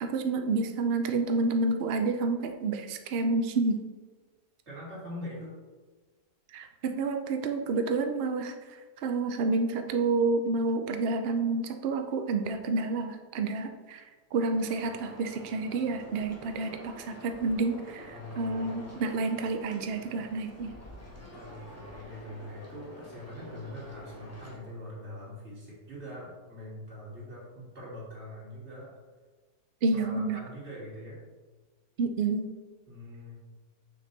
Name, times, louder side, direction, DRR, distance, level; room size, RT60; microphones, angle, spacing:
voice 1, 0.0-3.8 6.5-8.5 9.0-14.0 14.3-20.7 29.8-30.4 32.0-32.5, right 3 dB, 80° right, 5 dB, 0.5 m, -29 dB
voice 2, 4.7-5.5 18.1-18.9 21.1-28.9 29.9-31.2 32.9-33.4, left 1 dB, 40° right, -7 dB, 3.0 m, -43 dB
sound 1, 14.5-24.6, left 1 dB, 10° left, 1.1 m, -48 dB
6.8 x 6.3 x 4.0 m, 1.3 s
omnidirectional pair, 1.8 m